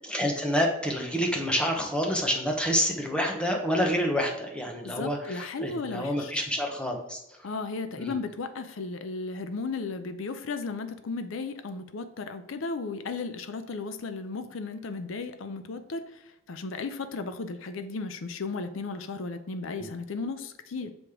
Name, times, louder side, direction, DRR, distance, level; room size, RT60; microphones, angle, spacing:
voice 1, 0.0-7.4 8.0-8.1 19.7-19.9, equal, 5° left, 1 dB, 0.9 m, -28 dB
voice 2, 4.8-6.4 7.4-16.2 16.5-20.9, left 3 dB, 75° left, 9 dB, 0.5 m, -35 dB
6.1 x 5.0 x 3.6 m, 0.90 s
head